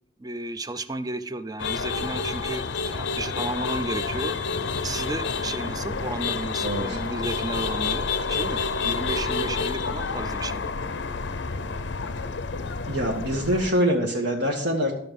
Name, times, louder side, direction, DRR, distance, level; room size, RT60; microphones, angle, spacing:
voice 1, 0.2-4.4 4.8-10.7, right 2 dB, 20° right, 12 dB, 0.5 m, -33 dB
sound 1, 1.6-13.7, left 4 dB, 65° left, 0.6 m, -29 dB
voice 2, 6.6-7.0 12.9-14.9, equal, 60° right, -1 dB, 1.4 m, -24 dB
13.0 x 6.1 x 5.2 m, 0.69 s
head